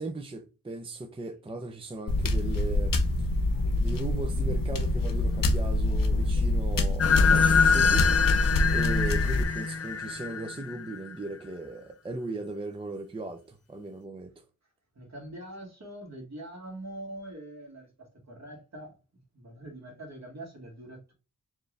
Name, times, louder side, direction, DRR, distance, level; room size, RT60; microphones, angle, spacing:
voice 1, 0.0-3.3 3.8-8.1 8.7-14.3, right 2 dB, 15° right, 0.5 m, -37 dB
sound 1, 2.1-9.4, left 2 dB, 90° left, 0.7 m, -26 dB
sound 2, 7.0-11.0, left 6 dB, 50° left, 0.5 m, -24 dB
voice 2, 15.0-18.9 19.3-21.1, right 1 dB, 55° right, 1.7 m, -43 dB
4.5 x 2.5 x 3.3 m
wide cardioid pair, 100°, 33 cm